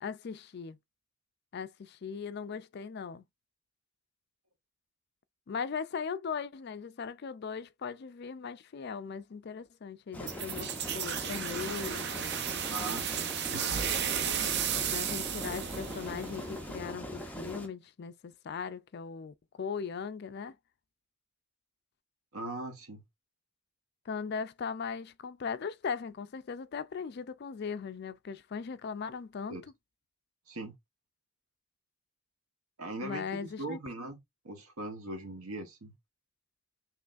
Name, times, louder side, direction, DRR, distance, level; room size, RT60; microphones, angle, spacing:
voice 1, 0.0-0.8 1.5-3.2 5.5-12.1 14.8-20.6 24.1-29.6 33.0-33.8, left 6 dB, 50° left, 0.4 m, -38 dB
sound 1, 10.1-17.7, equal, 5° left, 0.7 m, -41 dB
sound 2, 10.3-16.9, right 8 dB, 50° right, 0.6 m, -34 dB
voice 2, 12.7-13.3 22.3-23.0 29.5-29.6 30.5-30.7 32.8-34.2 34.4-35.9, right 2 dB, 85° right, 1.0 m, -40 dB
5.7 x 3.0 x 2.5 m
head